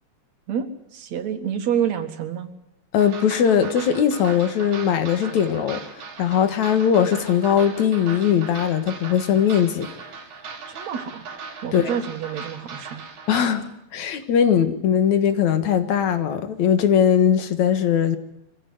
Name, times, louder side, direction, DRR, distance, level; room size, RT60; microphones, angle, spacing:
voice 1, 0.5-2.5 10.7-11.3 11.6-13.0 13.3-13.4, right 8 dB, 70° right, 8 dB, 3.0 m, -28 dB
voice 2, 2.9-5.9 6.2-9.9 11.7-11.9 13.3-18.2, left 8 dB, 75° left, 9 dB, 2.9 m, -20 dB
sound 1, 3.0-13.5, right 5 dB, 85° right, 3.6 m, -38 dB
23.5 x 16.0 x 9.4 m, 0.87 s
omnidirectional pair, 3.3 m